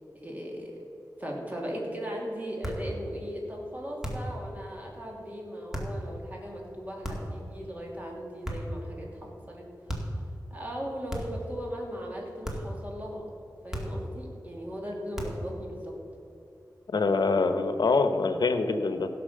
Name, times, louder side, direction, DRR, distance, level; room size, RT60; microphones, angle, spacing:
voice 1, 0.2-0.7 1.2-9.6 10.5-13.2 13.6-15.9, equal, 20° right, -2 dB, 2.7 m, -37 dB
sound 1, 2.6-2.9 4.0-4.4 5.7-6.0 7.0-7.4 8.4-8.8 9.9-10.2 11.1-11.5 12.4-12.8 13.7-14.1 15.1-15.5, equal, 5° right, 2.0 m, -34 dB
voice 2, 16.9-19.1, left 4 dB, 80° left, 9 dB, 0.9 m, -25 dB
16.0 x 6.0 x 6.6 m, 2.7 s
wide cardioid pair, 90°, 7 cm